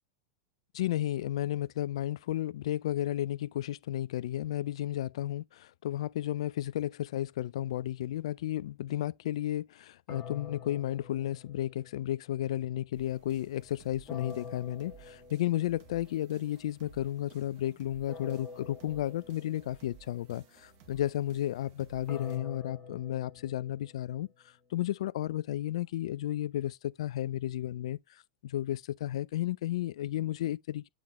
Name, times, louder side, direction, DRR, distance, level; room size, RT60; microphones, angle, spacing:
voice 1, 0.7-24.3 24.7-28.0 28.4-30.9, left 13 dB, 70° left, 0.3 m, -33 dB
sound 1, 10.1-12.1 14.1-15.9 18.1-19.9 22.1-24.3, left 6 dB, 35° left, 1.4 m, -46 dB
sound 2, 12.9-22.4, right 7 dB, 55° right, 1.7 m, -57 dB
8.6 x 3.6 x 3.0 m
hypercardioid pair, 100°, 3 cm